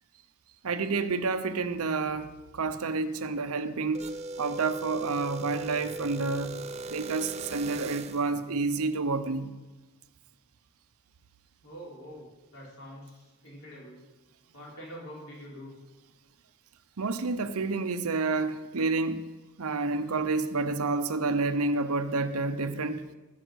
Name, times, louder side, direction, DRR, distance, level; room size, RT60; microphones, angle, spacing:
voice 1, 0.6-4.0 4.4-6.6 6.9-9.5 17.0-19.3 19.6-23.0, right 3 dB, 80° right, 0.7 m, -29 dB
sound 1, 3.9-8.4, right 2 dB, 30° right, 0.5 m, -39 dB
voice 2, 11.6-14.0 14.5-15.7 20.8-20.9 21.7-21.9, equal, 70° left, 4.4 m, -46 dB
15.0 x 5.7 x 6.4 m
head